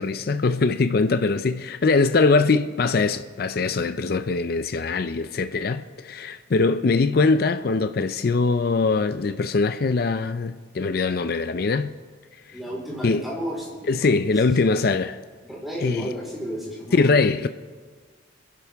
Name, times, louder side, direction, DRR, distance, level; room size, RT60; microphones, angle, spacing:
voice 1, 0.0-11.9 13.0-13.2 13.9-15.2 15.8-16.1 16.9-17.5, left 4 dB, 50° left, 0.4 m, -22 dB
voice 2, 12.5-14.2 14.8-14.9 15.4-17.2, equal, ahead, 4.0 m, -33 dB
28.5 x 11.0 x 3.5 m
head